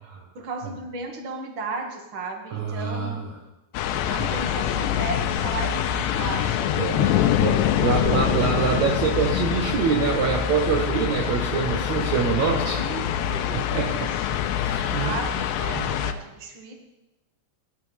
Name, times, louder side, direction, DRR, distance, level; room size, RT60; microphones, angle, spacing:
voice 1, 0.3-3.3 4.1-7.4 7.8-8.6 12.7-13.0 13.3-14.5 14.8-16.7, right 3 dB, 45° right, 1 dB, 1.7 m, -35 dB
voice 2, 2.5-3.2 4.2-4.4 6.8-12.8 13.5-14.1 14.6-15.1 15.7-15.9, right 6 dB, 75° right, 1 dB, 1.6 m, -25 dB
sound 1, 3.7-16.1, left 10 dB, 90° left, 2.9 m, -25 dB
20.5 x 13.0 x 3.4 m, 1.0 s
omnidirectional pair, 4.9 m